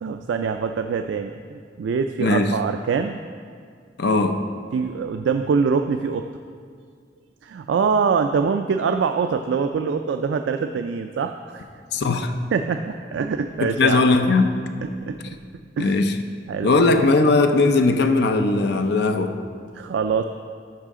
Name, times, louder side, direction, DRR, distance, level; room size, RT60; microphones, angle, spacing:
voice 1, 0.0-3.2 4.7-6.2 7.4-11.7 12.5-14.1 15.0-15.4 15.8-16.0 16.5-16.7 19.7-20.2, right 5 dB, 80° right, 6 dB, 0.3 m, -24 dB
voice 2, 2.2-2.6 4.0-4.4 11.9-12.3 13.6-14.7 15.8-16.2 16.6-19.4, left 3 dB, 65° left, 7 dB, 0.5 m, -19 dB
12.5 x 5.6 x 3.7 m, 2.2 s
head